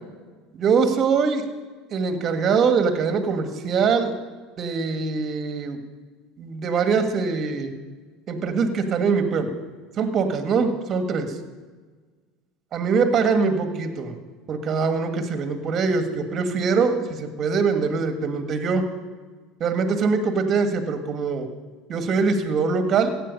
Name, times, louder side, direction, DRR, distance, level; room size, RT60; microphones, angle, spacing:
voice 1, 0.5-1.5 1.9-4.1 4.6-5.8 6.4-7.7 8.3-9.5 10.0-11.3 12.7-14.1 14.5-18.9 19.6-21.5 21.9-23.1, right 5 dB, 45° right, 7 dB, 1.7 m, -23 dB
15.0 x 9.0 x 5.4 m, 1.4 s
hypercardioid pair, 85°, 0 cm